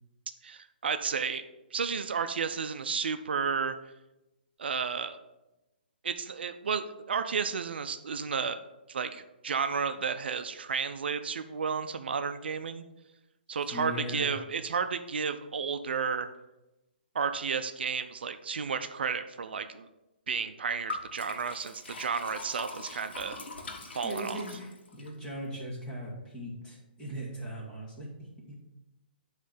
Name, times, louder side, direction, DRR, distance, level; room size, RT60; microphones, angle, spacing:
voice 1, 0.4-1.4 1.7-3.7 4.6-5.2 6.0-8.6 8.9-12.9 13.5-16.3 17.1-19.9 20.3-23.4 23.9-24.4, right 6 dB, 75° right, 9 dB, 0.5 m, -32 dB
voice 2, 13.7-14.3 24.0-28.1 28.5-28.6, equal, 15° left, -5 dB, 1.9 m, -39 dB
Liquid, 20.9-25.1, left 3 dB, 80° left, 1.5 m, -42 dB
8.3 x 3.2 x 5.7 m, 0.99 s
hypercardioid pair, 155°, 6 cm